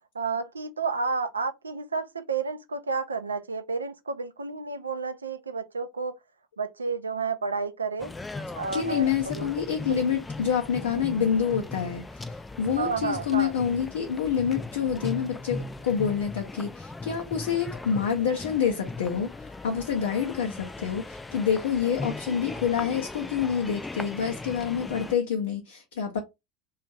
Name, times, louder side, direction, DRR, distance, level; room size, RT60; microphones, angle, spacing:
voice 1, 0.1-6.1 6.6-8.1 8.5-9.5 9.9-10.2 10.9-11.1 12.8-13.5, right 4 dB, 85° right, 0.4 m, -31 dB
sound 1, 8.0-25.1, left 3 dB, 15° left, 0.3 m, -38 dB
voice 2, 8.7-26.2, left 7 dB, 70° left, 0.5 m, -27 dB
2.5 x 2.3 x 3.1 m
figure-of-eight pair, 75°, 0 cm